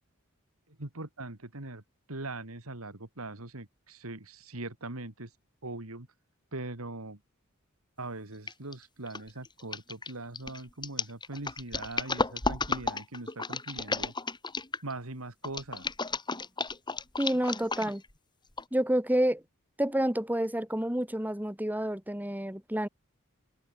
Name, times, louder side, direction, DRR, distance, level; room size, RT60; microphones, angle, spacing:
voice 1, 0.7-1.8 2.1-5.3 5.6-6.1 6.5-7.2 8.0-14.1 14.8-15.9, right 2 dB, 90° right, 2.7 m, -41 dB
sound 1, 8.5-8.7 9.1-14.9 15.4-18.1 18.6-18.7, left 3 dB, 20° left, 4.5 m, -33 dB
voice 2, 17.2-18.0 18.7-19.4 19.8-22.9, right 1 dB, 10° right, 3.4 m, -29 dB
head